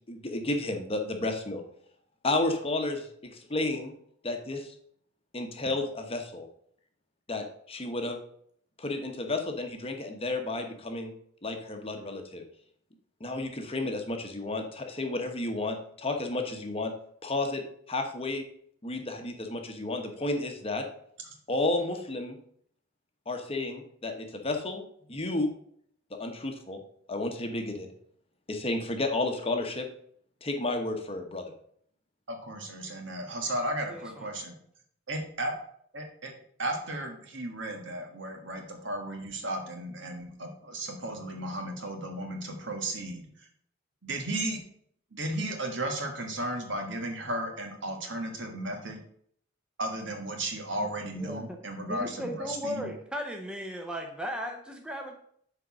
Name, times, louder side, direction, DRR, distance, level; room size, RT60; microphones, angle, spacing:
voice 1, 0.1-1.6 2.2-3.9 4.2-4.7 5.3-6.5 7.3-8.2 8.8-11.1 11.4-12.4 13.2-16.9 17.2-18.4 18.8-20.8 21.5-22.4 23.3-24.8 25.1-25.5 26.1-26.8 27.1-27.9 28.5-29.9 30.4-31.5, left 2 dB, 30° left, 4 dB, 1.0 m, -32 dB
voice 2, 32.3-34.5 35.1-35.5 35.9-36.3 36.6-43.3 44.0-44.6 45.1-49.0 49.8-52.9, right 1 dB, 65° right, 3 dB, 1.5 m, -34 dB
voice 3, 33.9-34.3 51.1-51.6 51.8-55.2, equal, 5° right, 2 dB, 0.8 m, -36 dB
6.4 x 4.6 x 6.0 m, 0.64 s
head